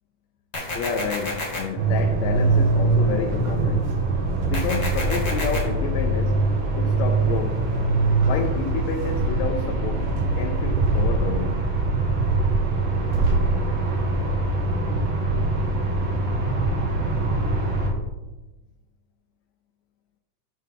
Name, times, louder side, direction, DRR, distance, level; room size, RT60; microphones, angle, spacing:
sound 1, 0.5-1.6 4.5-5.6, left 2 dB, 25° left, 0.9 m, -30 dB
voice 1, 0.7-3.9 4.4-6.4 6.8-7.6 8.2-10.0 10.4-11.6, left 6 dB, 80° left, 3 dB, 1.7 m, -30 dB
sound 2, 1.8-17.9, right 2 dB, 65° right, 2.3 m, -23 dB
6.7 x 6.5 x 3.7 m, 1.1 s
omnidirectional pair, 3.5 m